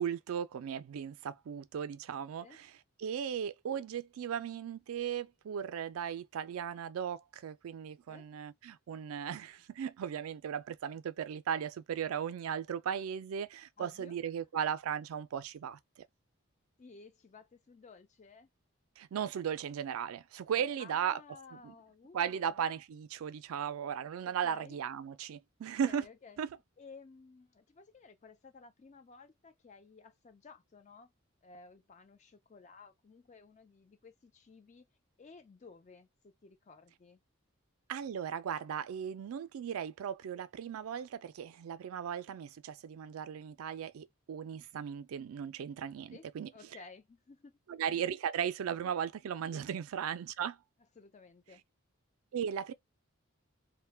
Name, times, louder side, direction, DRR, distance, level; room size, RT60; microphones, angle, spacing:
voice 1, 0.0-2.7 3.0-16.0 19.0-21.2 21.5-21.7 22.1-26.0 26.4-26.5 37.9-46.5 47.7-50.6 52.3-52.7, right 8 dB, 85° right, 0.3 m, -37 dB
voice 2, 13.8-14.5 16.8-18.5 20.6-22.6 24.2-24.8 25.7-26.4 26.8-31.1 31.4-34.9 35.2-37.2 46.1-47.5 49.5-49.7 51.0-51.6, left 4 dB, 35° left, 0.3 m, -55 dB
2.2 x 2.1 x 3.3 m
head